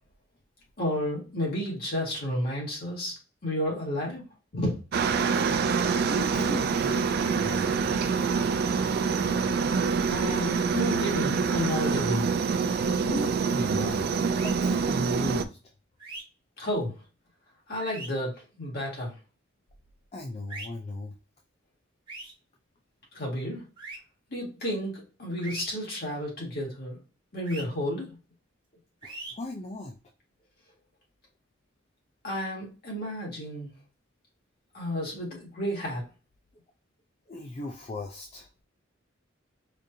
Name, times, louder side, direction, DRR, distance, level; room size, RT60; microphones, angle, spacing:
voice 1, 0.8-4.3 4.5-4.8 10.0-12.3 16.6-17.0 17.7-19.2 23.1-23.7 24.3-27.0 27.3-28.2 32.2-33.7 34.7-36.1, equal, 50° left, 1.9 m, -31 dB
Aircraft, 4.9-15.4, right 5 dB, 50° right, 0.3 m, -26 dB
voice 2, 6.1-7.1 7.4-7.7 13.0-14.1 14.4-15.6 20.1-21.1 29.0-30.0 37.3-38.5, left 2 dB, 30° left, 0.4 m, -36 dB
sound 1, 14.3-14.5 16.0-16.2 17.8-18.1 20.5-20.7 22.1-22.3 23.8-24.0 25.4-25.7 27.4-27.6 29.0-29.3, right 2 dB, 25° right, 1.3 m, -40 dB
5.0 x 2.5 x 2.7 m
head